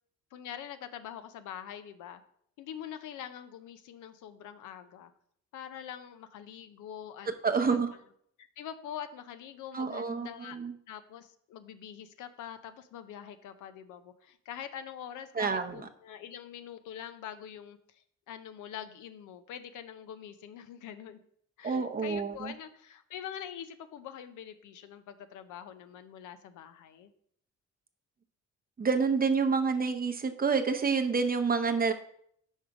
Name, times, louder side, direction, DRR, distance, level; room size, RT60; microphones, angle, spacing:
voice 1, 0.3-2.2 2.6-5.1 5.5-7.3 7.7-7.8 8.4-10.6 10.9-21.2 21.6-27.1, left 9 dB, 80° left, 10 dB, 0.6 m, -44 dB
voice 2, 7.4-7.9 9.7-10.7 15.3-15.7 21.6-22.5 28.8-31.9, right 5 dB, 30° right, 7 dB, 0.7 m, -28 dB
5.4 x 5.0 x 4.7 m, 0.66 s
cardioid pair, 90°, 30 cm